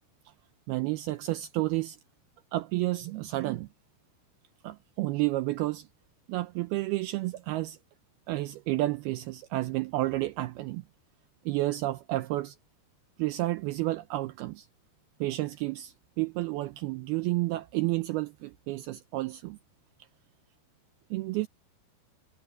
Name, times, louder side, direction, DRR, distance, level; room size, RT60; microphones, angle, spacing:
voice 1, 0.7-2.0 2.5-3.7 4.6-5.9 6.3-7.8 8.3-10.8 11.5-12.6 13.2-14.7 15.2-19.6 21.1-21.5, right 18 dB, 80° right, 2.4 m, -31 dB
omnidirectional pair, 4.8 m